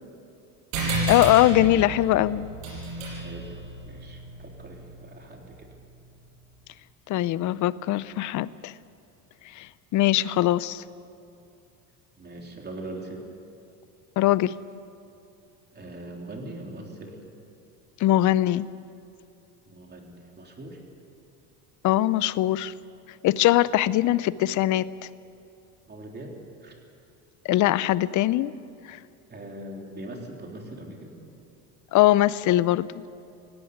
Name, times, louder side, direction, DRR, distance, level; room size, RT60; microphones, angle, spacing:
sound 1, 0.7-5.6, right 2 dB, 80° right, 6.6 m, -32 dB
voice 1, 1.1-2.5 7.1-8.7 9.6-10.8 14.2-14.6 18.0-18.7 21.8-22.7 23.2-24.9 27.4-28.5 28.9-29.0 31.9-33.0, left 14 dB, 50° left, 19 dB, 0.6 m, -21 dB
voice 2, 3.0-5.7 12.2-13.3 15.7-17.2 19.7-20.8 25.9-26.8 29.3-31.2, right 1 dB, 25° right, 1 dB, 3.7 m, -41 dB
18.0 x 17.0 x 9.6 m, 2.5 s
supercardioid pair, 115°, 39 cm